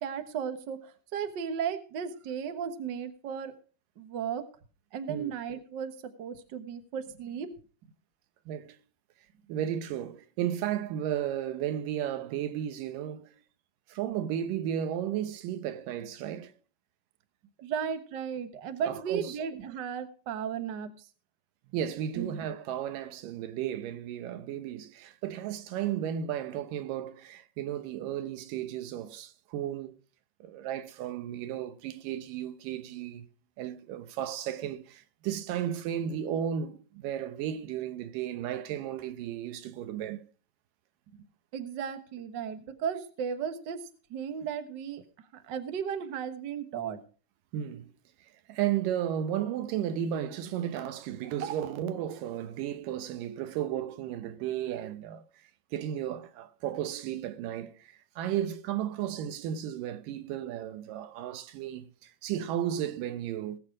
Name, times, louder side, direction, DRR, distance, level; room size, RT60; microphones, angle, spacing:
voice 1, 0.0-3.5 4.0-4.4 4.9-5.9 6.2-7.5 17.6-20.9 22.1-22.4 41.5-43.8 44.1-45.0 45.3-47.0, right 7 dB, 50° right, 1.3 m, -35 dB
voice 2, 9.5-13.3 13.9-16.5 18.8-19.3 21.7-30.0 30.4-33.3 33.6-40.3 47.5-47.9 48.5-55.2 55.7-63.6, right 10 dB, 90° right, 2.6 m, -34 dB
19.5 x 6.9 x 4.8 m
omnidirectional pair, 3.7 m